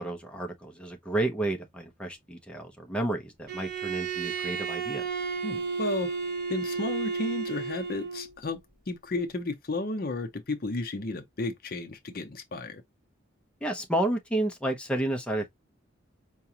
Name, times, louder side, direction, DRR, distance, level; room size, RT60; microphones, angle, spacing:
voice 1, 0.0-5.0 13.6-15.5, right 1 dB, 5° left, 0.6 m, -31 dB
Bowed string instrument, 3.5-8.3, right 5 dB, 50° right, 0.9 m, -32 dB
voice 2, 5.4-6.2 6.5-8.6 8.9-12.8, left 2 dB, 50° left, 0.6 m, -33 dB
4.8 x 2.3 x 2.7 m
head